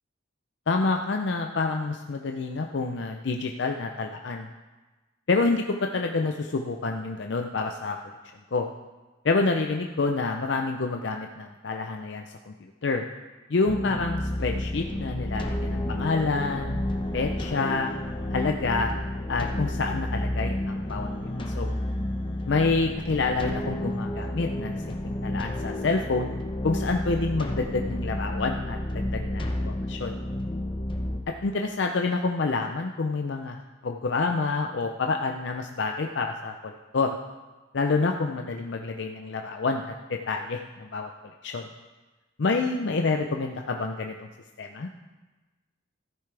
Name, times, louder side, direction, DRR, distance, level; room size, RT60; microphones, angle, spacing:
voice 1, 0.7-4.5 5.3-8.0 8.5-8.7 9.2-12.5 12.8-13.0 13.5-16.8 17.1-17.9 18.3-18.9 19.3-21.1 21.5-21.7 22.5-26.3 26.6-30.2 31.4-33.6 33.8-37.2 37.7-41.1 41.4-41.7 42.4-44.3 44.6-44.9, left 3 dB, 60° left, 3 dB, 0.5 m, -28 dB
sound 1, 13.7-31.2, left 1 dB, 25° left, 0.9 m, -31 dB
14.0 x 9.2 x 3.4 m, 1.2 s
head